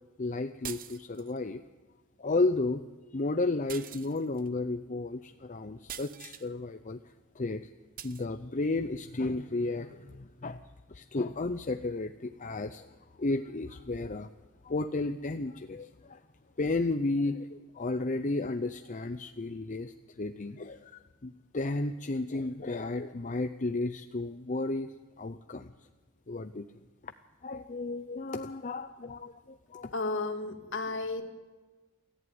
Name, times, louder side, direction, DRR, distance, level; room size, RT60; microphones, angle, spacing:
voice 1, 0.2-1.6 2.2-2.8 3.1-7.0 7.3-7.7 8.0-10.6 10.9-12.9 13.2-14.3 14.6-16.2 16.6-24.9 25.2-25.7 26.3-26.7 27.0-27.1 27.4-29.9, left 2 dB, 35° left, 9 dB, 0.7 m, -33 dB
sound 1, 0.6-1.4 3.7-4.5 5.9-6.5 8.0-8.3, right 10 dB, 40° right, 0.9 m, -44 dB
voice 2, 29.9-31.3, left 3 dB, 60° left, 6 dB, 2.2 m, -33 dB
28.0 x 14.5 x 9.5 m, 1.3 s
head